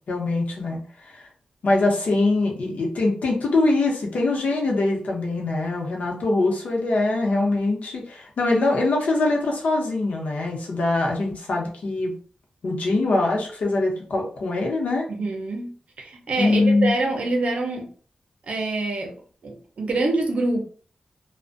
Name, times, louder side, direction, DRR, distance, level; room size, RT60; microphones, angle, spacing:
voice 1, 0.1-0.8 1.1-1.2 1.6-12.1 12.6-15.1 16.4-16.9, left 2 dB, 80° left, 0 dB, 0.7 m, -23 dB
voice 2, 15.1-17.9 18.4-19.2 19.4-20.6, right 2 dB, 60° right, 2 dB, 0.6 m, -26 dB
2.5 x 2.1 x 2.4 m, 0.43 s
wide cardioid pair, 165°, 3 cm